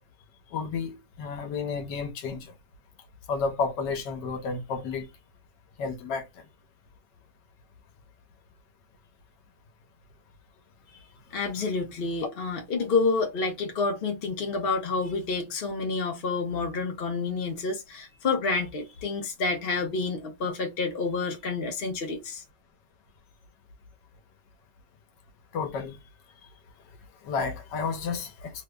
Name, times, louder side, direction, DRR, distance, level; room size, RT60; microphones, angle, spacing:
voice 1, 0.5-2.5 3.3-5.1 5.8-6.3 25.5-26.0 27.2-28.5, left 5 dB, 80° left, 1.5 m, -31 dB
voice 2, 11.3-22.4, left 4 dB, 45° left, 0.8 m, -29 dB
3.4 x 2.1 x 3.5 m
omnidirectional pair, 1.8 m